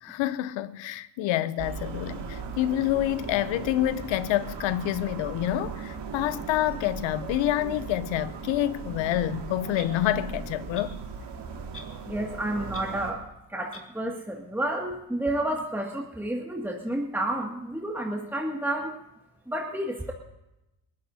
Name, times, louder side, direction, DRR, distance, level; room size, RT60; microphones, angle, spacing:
voice 1, 0.0-11.0, left 13 dB, 80° left, 0.7 m, -27 dB
sound 1, 1.6-13.1, right 5 dB, 65° right, 2.2 m, -38 dB
Clock, 9.8-9.9 10.7-10.9 11.7-12.0 12.3-12.4 12.7-12.9 13.7-13.9, left 3 dB, 30° left, 2.5 m, -43 dB
voice 2, 12.0-13.2 13.5-18.9 19.5-20.1, right 1 dB, 5° right, 2.1 m, -30 dB
22.0 x 15.0 x 2.8 m
supercardioid pair, 60°, 44 cm